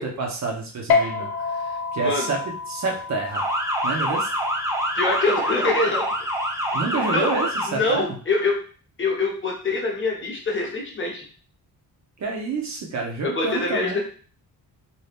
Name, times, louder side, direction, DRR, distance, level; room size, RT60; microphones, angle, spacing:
voice 1, 0.0-2.4 2.7-3.5 3.8-4.3 6.7-8.2 12.2-14.0, right 4 dB, 45° right, 1 dB, 0.6 m, -28 dB
sound 1, 0.9-7.7, left 5 dB, 70° left, 0.6 m, -30 dB
Motor vehicle (road) / Siren, 3.3-7.7, equal, 10° right, 0.4 m, -25 dB
voice 2, 4.9-6.1 7.1-7.3 7.7-8.6 9.0-11.2 13.2-14.0, left 3 dB, 30° left, -1 dB, 0.8 m, -24 dB
2.7 x 2.3 x 3.3 m, 0.41 s
wide cardioid pair, 175°, 38 cm